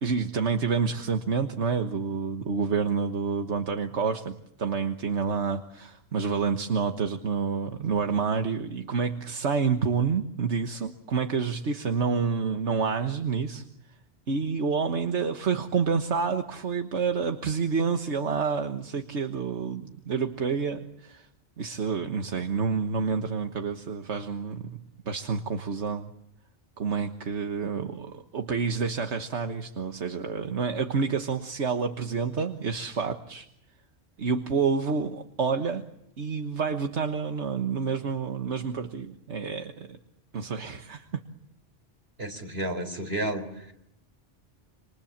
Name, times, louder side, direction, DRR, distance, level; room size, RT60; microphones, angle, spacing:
voice 1, 0.0-13.7 14.3-21.3 21.6-26.1 26.8-33.5 34.2-35.9 36.2-40.0 40.3-41.2, right 5 dB, 80° right, 6 dB, 1.7 m, -28 dB
voice 2, 42.2-43.7, right 1 dB, 60° right, 7 dB, 4.3 m, -32 dB
28.0 x 26.5 x 7.4 m, 0.77 s
omnidirectional pair, 1.2 m